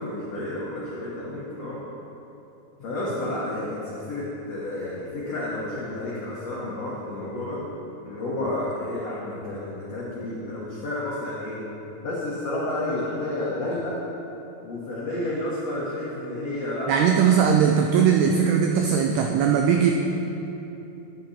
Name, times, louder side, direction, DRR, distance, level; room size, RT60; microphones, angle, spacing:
voice 1, 0.0-1.8 2.8-7.6 8.0-11.6 12.0-14.0 14.6-17.3, left 1 dB, 80° left, -7 dB, 1.4 m, -31 dB
voice 2, 16.9-19.9, right 7 dB, 85° right, 2 dB, 2.3 m, -19 dB
10.5 x 10.0 x 4.3 m, 3.0 s
omnidirectional pair, 5.3 m